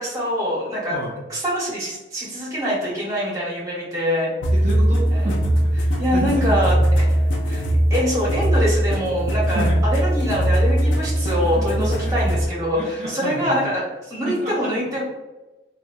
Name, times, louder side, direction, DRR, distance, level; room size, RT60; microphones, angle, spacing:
voice 1, 0.0-1.0 1.3-4.3 5.1-5.3 6.0-7.1 7.4-7.6 7.9-15.0, equal, 20° right, -5 dB, 0.9 m, -24 dB
sound 1, 4.4-12.5, right 1 dB, 90° left, 0.4 m, -20 dB
voice 2, 4.5-7.0 9.4-9.7 11.3-11.4 12.0-12.2 12.7-13.6 14.2-14.5, right 1 dB, 40° right, -5 dB, 0.4 m, -31 dB
3.0 x 2.3 x 2.5 m, 1.1 s
head